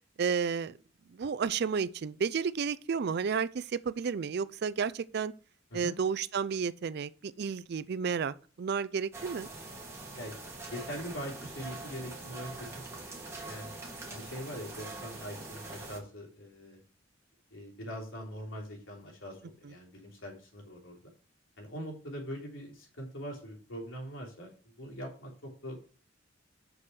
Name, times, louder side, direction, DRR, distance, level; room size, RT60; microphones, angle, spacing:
voice 1, 0.2-0.8 1.1-5.3 5.7-9.5, right 6 dB, 55° right, 0.4 m, -32 dB
sound 1, 9.1-16.0, right 2 dB, 15° right, 1.8 m, -44 dB
voice 2, 10.7-13.7 14.1-16.8 17.5-21.0 21.6-25.9, equal, 85° left, 3.2 m, -42 dB
6.3 x 6.1 x 6.0 m
head